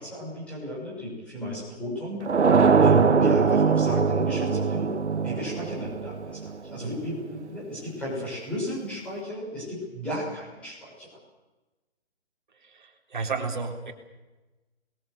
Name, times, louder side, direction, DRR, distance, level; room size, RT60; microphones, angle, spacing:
voice 1, 0.0-2.3 2.8-5.0 5.2-11.1, equal, 5° left, -7 dB, 6.3 m, -34 dB
sound 1, 2.3-7.0, right 5 dB, 80° right, 1.8 m, -22 dB
voice 2, 12.6-13.9, right 4 dB, 45° right, 3 dB, 4.0 m, -32 dB
26.5 x 22.0 x 6.7 m, 1.1 s
hypercardioid pair, 180°, 34 cm